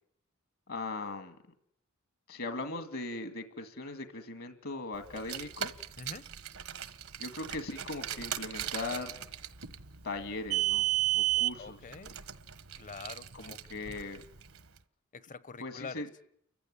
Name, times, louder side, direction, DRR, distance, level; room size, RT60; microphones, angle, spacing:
voice 1, 0.7-1.4 2.3-5.7 7.2-9.2 10.0-10.9 11.2-11.8 13.3-14.2 15.6-16.1, left 2 dB, 65° left, 8 dB, 2.0 m, -39 dB
Car, 5.1-14.6, right 15 dB, 70° right, 1.4 m, -34 dB
voice 2, 6.0-6.3 11.6-12.2 12.8-13.6 15.1-16.0, left 4 dB, 35° left, 17 dB, 0.9 m, -45 dB
29.5 x 15.5 x 9.9 m, 0.71 s
head